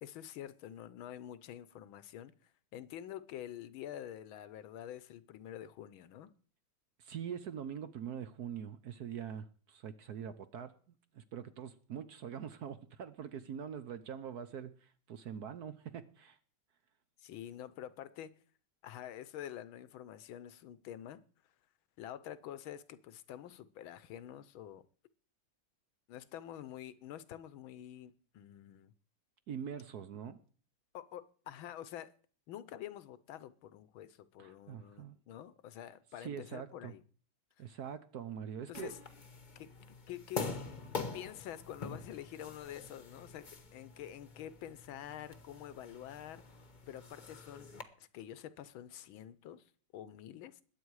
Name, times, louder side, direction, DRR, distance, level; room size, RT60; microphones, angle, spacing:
voice 1, 0.0-2.3 2.7-6.3 17.2-18.3 18.8-21.2 22.0-24.8 26.1-28.9 30.9-32.1 32.5-37.0 37.6-37.7 38.7-39.0 39.5-39.7 40.1-40.4 41.0-46.4 46.9-47.7 48.0-49.6 49.9-50.6, left 11 dB, 80° left, 1.6 m, -47 dB
voice 2, 7.0-10.7 11.1-16.4 29.5-30.4 34.4-35.2 36.2-36.9 37.6-38.9, right 8 dB, 60° right, 1.2 m, -43 dB
sound 1, 38.7-47.8, left 4 dB, 30° left, 0.9 m, -45 dB
21.0 x 8.7 x 4.8 m
omnidirectional pair, 2.2 m